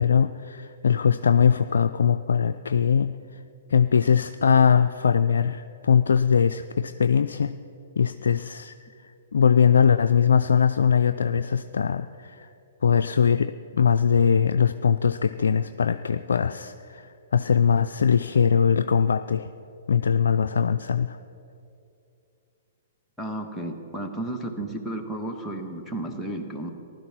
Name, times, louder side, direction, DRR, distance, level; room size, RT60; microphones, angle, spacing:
voice 1, 0.0-3.4 3.7-7.5 8.0-12.5 12.8-19.5 19.9-21.2, left 7 dB, 75° left, 8 dB, 0.3 m, -21 dB
voice 2, 23.2-26.7, right 1 dB, ahead, -1 dB, 1.6 m, -33 dB
15.0 x 12.0 x 6.1 m, 2.7 s
hypercardioid pair, 125°, 0 cm